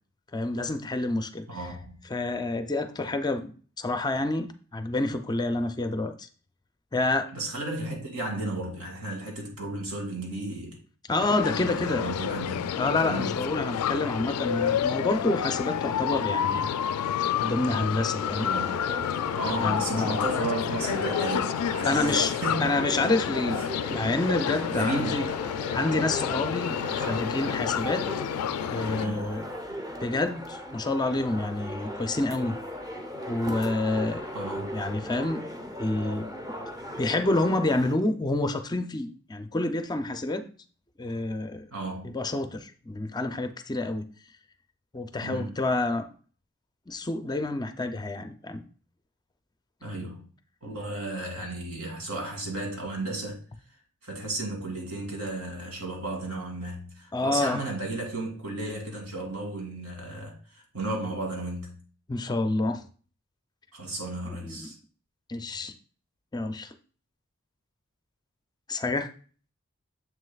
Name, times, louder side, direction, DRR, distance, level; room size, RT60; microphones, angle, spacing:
voice 1, 0.3-1.5 2.1-3.5 3.8-6.3 6.9-7.3 11.1-12.1 12.8-16.7 17.4-18.5 19.6-20.2 21.9-22.3 22.6-23.6 23.9-25.3 25.7-28.1 28.7-29.5 30.0-32.6 33.3-34.3 34.7-36.3 37.0-40.5 41.0-41.7 42.0-44.1 44.9-46.1 46.9-48.7 57.1-57.6 62.1-62.8 64.2-64.7 65.3-65.7 66.3-66.7 68.7-69.1, left 2 dB, 20° left, 0.4 m, -28 dB
voice 2, 1.5-2.0 7.3-10.8 11.6-12.8 13.0-13.4 18.4-18.8 19.4-22.7 23.5-23.7 24.7-25.2 28.9-29.3 34.3-34.8 41.7-42.1 45.2-45.6 49.8-50.3 50.6-53.4 54.0-61.8 63.7-64.8, right 2 dB, 80° right, 2.3 m, -34 dB
sound 1, 11.2-29.1, left 9 dB, 90° left, 0.3 m, -29 dB
sound 2, 18.2-37.9, equal, 20° right, 0.8 m, -37 dB
7.4 x 6.4 x 2.3 m
head